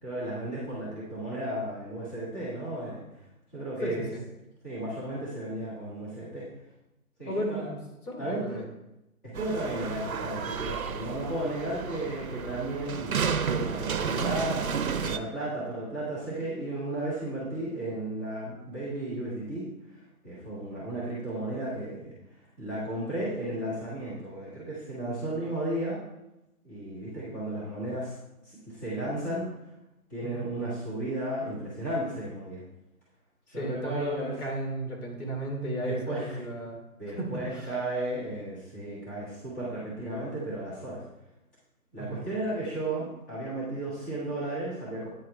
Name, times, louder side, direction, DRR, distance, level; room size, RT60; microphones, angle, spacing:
voice 1, 0.0-3.0 3.5-4.0 4.6-6.5 7.2-7.7 8.2-8.6 9.2-19.7 20.2-22.1 22.6-26.0 26.6-28.1 28.4-29.5 30.1-32.6 33.5-34.4 35.8-36.4 37.0-41.0 41.9-45.1, right 1 dB, 10° left, -10 dB, 1.5 m, -34 dB
voice 2, 3.8-4.2 7.3-7.8 8.1-8.7 30.2-30.4 33.5-36.8 37.2-37.7 42.0-42.2, right 1 dB, 75° left, -1 dB, 3.0 m, -34 dB
sound 1, 9.3-15.2, right 6 dB, 65° right, 0.7 m, -32 dB
9.3 x 4.8 x 4.2 m, 0.92 s
figure-of-eight pair, 165°, 45 cm